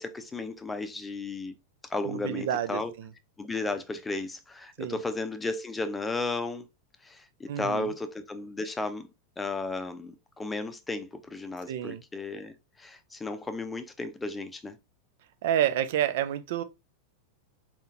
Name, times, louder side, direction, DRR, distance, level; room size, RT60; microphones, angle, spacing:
voice 1, 0.0-1.6 1.9-2.9 3.4-6.7 7.0-9.1 9.4-14.8, left 3 dB, 10° left, 0.6 m, -34 dB
voice 2, 2.0-3.1 4.8-5.0 7.5-7.9 11.7-12.0 15.4-16.6, right 10 dB, 55° right, 0.5 m, -29 dB
4.4 x 3.7 x 2.7 m
figure-of-eight pair, 90°, 0 cm